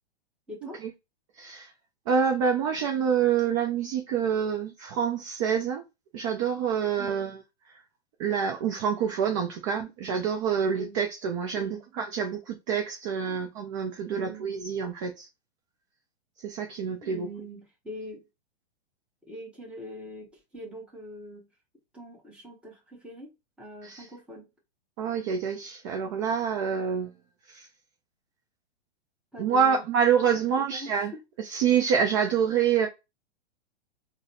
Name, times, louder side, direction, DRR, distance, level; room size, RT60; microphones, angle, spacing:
voice 1, 0.5-0.9 7.0-7.4 10.8-11.0 11.5-11.9 14.1-14.6 17.0-18.2 19.3-20.3 20.5-21.4 21.9-24.4 29.3-29.9 30.3-31.2, equal, 5° right, 0.9 m, -43 dB
voice 2, 1.4-1.7 2.1-5.8 6.1-7.4 8.2-15.3 16.4-17.3 23.8-24.1 25.0-27.1 27.5-27.7 29.4-31.1 31.4-32.9, right 7 dB, 30° right, 0.4 m, -27 dB
3.8 x 2.1 x 2.6 m
hypercardioid pair, 125°, 33 cm